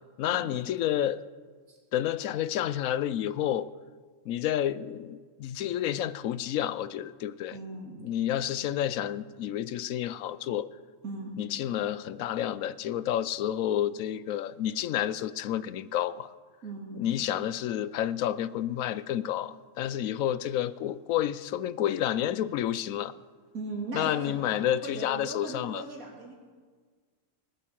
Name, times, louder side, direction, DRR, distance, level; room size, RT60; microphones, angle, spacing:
voice 1, 0.2-1.2 1.9-3.7 4.3-7.6 8.0-10.7 11.4-16.3 16.9-23.1 23.9-25.8, left 11 dB, 80° left, 17 dB, 1.0 m, -30 dB
voice 2, 7.5-8.0 11.0-11.4 16.6-17.0 23.5-26.3, right 2 dB, 90° right, -2 dB, 3.1 m, -39 dB
19.0 x 8.2 x 7.6 m, 1.5 s
omnidirectional pair, 1.4 m